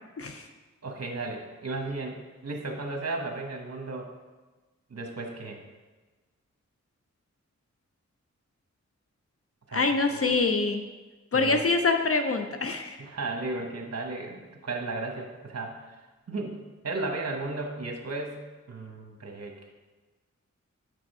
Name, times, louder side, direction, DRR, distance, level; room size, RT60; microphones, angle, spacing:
voice 1, 0.2-0.5 9.7-10.8 11.3-13.0, left 3 dB, 50° left, 6 dB, 0.5 m, -25 dB
voice 2, 0.8-4.1 4.9-5.6 9.7-10.3 11.3-11.6 13.0-16.0 16.3-19.5, right 3 dB, 55° right, 2 dB, 1.2 m, -35 dB
6.5 x 4.9 x 4.7 m, 1.3 s
wide cardioid pair, 60°, 29 cm